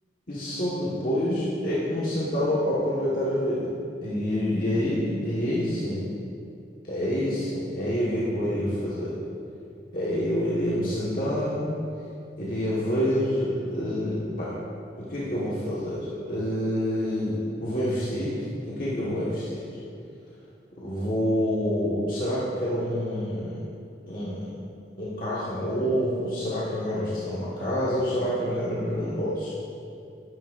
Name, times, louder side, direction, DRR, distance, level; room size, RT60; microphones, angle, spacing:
voice 1, 0.3-3.7 4.0-6.0 6.8-9.2 9.9-11.7 12.4-14.5 15.0-18.4 18.7-19.6 20.8-23.5 24.1-24.5 25.0-29.5, equal, 50° left, -9 dB, 1.6 m, -27 dB
12.0 x 9.8 x 2.6 m, 2.5 s
head